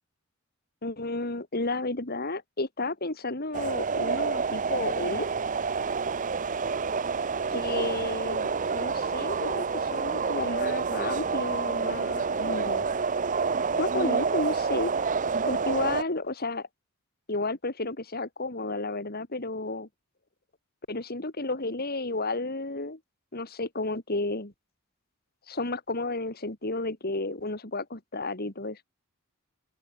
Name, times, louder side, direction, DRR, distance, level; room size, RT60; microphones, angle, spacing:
voice 1, 0.8-5.3 7.5-12.9 13.8-14.9 15.4-16.7 17.3-19.9 20.9-23.0 23.3-24.5 25.5-28.9, left 2 dB, 45° left, 2.7 m, -32 dB
sound 1, 3.5-16.0, right 5 dB, 40° right, 0.7 m, -28 dB
open air
head